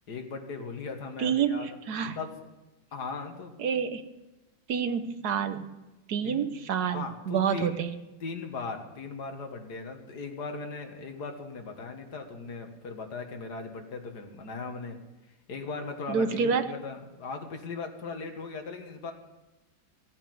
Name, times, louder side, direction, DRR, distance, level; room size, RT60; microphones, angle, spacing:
voice 1, 0.1-1.7 2.2-2.3 2.9-3.5 6.2-6.4 6.9-7.8 8.2-15.0 15.5-19.1, left 4 dB, 55° left, 5 dB, 2.1 m, -38 dB
voice 2, 1.2-2.2 3.6-4.0 4.7-5.6 6.1-7.9 16.1-16.6, right 7 dB, 60° right, 9 dB, 1.4 m, -28 dB
14.5 x 9.1 x 7.8 m, 1.1 s
omnidirectional pair, 2.1 m